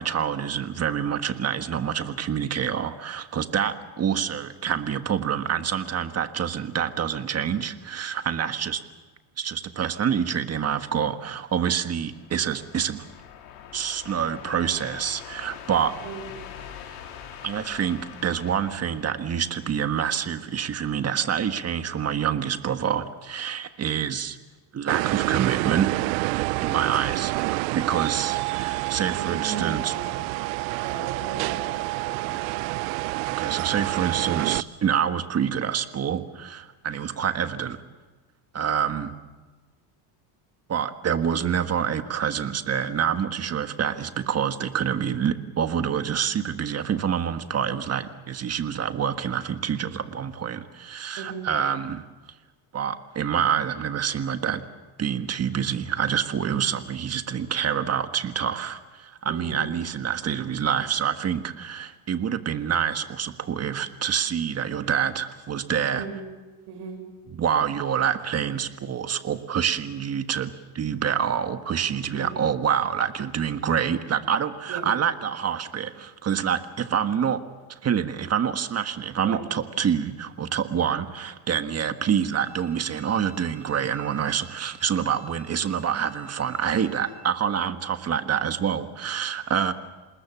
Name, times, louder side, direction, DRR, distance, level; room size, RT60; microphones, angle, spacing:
voice 1, 0.0-8.8 9.4-13.1 13.7-15.9 17.4-24.4 24.7-25.9 26.6-27.3 27.7-29.9 33.3-37.8 38.5-39.1 40.7-52.0 52.7-54.6 55.0-66.0 67.3-77.4 77.7-89.7, right 8 dB, 30° right, 9 dB, 1.6 m, -27 dB
sound 1, 11.9-20.3, left 9 dB, 85° left, 4.5 m, -44 dB
sound 2, 24.9-34.6, right 22 dB, 80° right, 0.7 m, -28 dB
voice 2, 29.1-30.3 30.8-32.4 51.2-51.5 59.2-59.7 65.9-66.2 66.7-67.0 72.0-72.4 74.7-74.9 79.2-79.5, right 5 dB, 55° right, 5 dB, 6.9 m, -36 dB
Bowed string instrument, 82.3-87.2, right 3 dB, 5° right, 6.2 m, -52 dB
27.5 x 20.0 x 7.3 m, 1.3 s
supercardioid pair, 115°, 48 cm